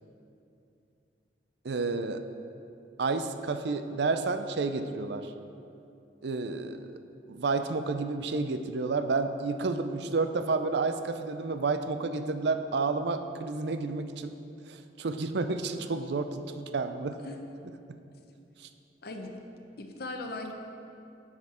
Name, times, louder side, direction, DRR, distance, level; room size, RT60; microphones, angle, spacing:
voice 1, 1.6-2.2 3.0-5.3 6.2-6.9 7.3-14.3 14.7-17.2 18.6-18.7, right 3 dB, 65° right, 9 dB, 0.5 m, -30 dB
voice 2, 19.0-19.4 19.8-20.5, left 2 dB, 60° left, 4 dB, 0.8 m, -38 dB
9.6 x 7.4 x 4.3 m, 2.7 s
head